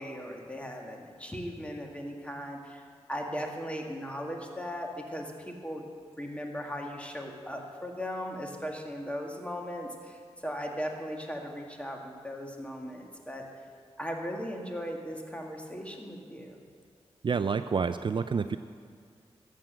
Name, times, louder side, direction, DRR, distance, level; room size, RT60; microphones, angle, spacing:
voice 1, 0.0-5.8 6.2-13.4 14.0-16.6, equal, 10° left, 1 dB, 2.0 m, -38 dB
voice 2, 17.2-18.6, right 5 dB, 45° right, 11 dB, 0.4 m, -28 dB
13.5 x 7.4 x 6.3 m, 2.1 s
cardioid pair, 50°, 12 cm